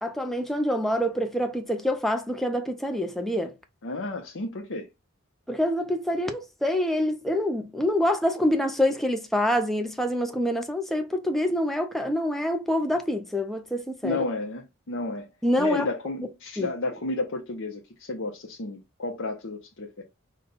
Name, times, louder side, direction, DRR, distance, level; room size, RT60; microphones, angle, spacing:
voice 1, 0.0-3.5 5.5-14.2 15.4-15.9 16.6-16.7, left 1 dB, ahead, 0.4 m, -26 dB
voice 2, 3.8-4.9 14.0-15.3 15.6-20.0, left 3 dB, 60° left, 0.7 m, -32 dB
5.1 x 2.2 x 3.9 m
head